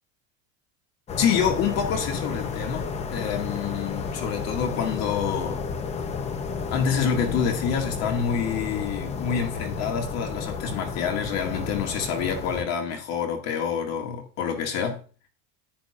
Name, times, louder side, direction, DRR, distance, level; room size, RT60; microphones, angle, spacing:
sound 1, 1.1-12.6, left 5 dB, 15° left, 0.5 m, -32 dB
voice 1, 1.2-5.6 6.7-15.0, left 7 dB, 40° left, 2.1 m, -27 dB
10.5 x 8.7 x 2.5 m
cardioid pair, 165°, 39 cm